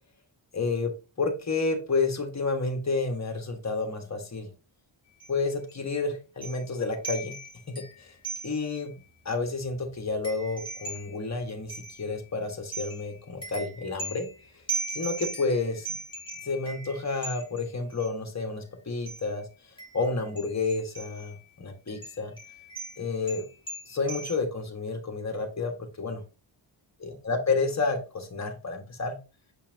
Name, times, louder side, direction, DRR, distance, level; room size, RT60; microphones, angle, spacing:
voice 1, 0.5-0.9 1.2-4.5 5.3-7.4 7.7-8.1 8.4-8.9 9.2-14.3 14.9-15.9 16.4-19.4 19.9-22.3 23.0-23.5 23.9-25.7 26.0-26.2 27.0-29.2, left 3 dB, 35° left, 4 dB, 1.6 m, -30 dB
sound 1, 5.2-5.4 5.7-5.8 6.4-6.7 7.0-8.8 9.2-9.3 9.5-12.3 12.7-18.1 19.1-19.3 19.8-21.4 21.9-24.4, right 3 dB, 10° left, 3.0 m, -39 dB
6.1 x 5.7 x 2.8 m, 0.31 s
wide cardioid pair, 125°, 48 cm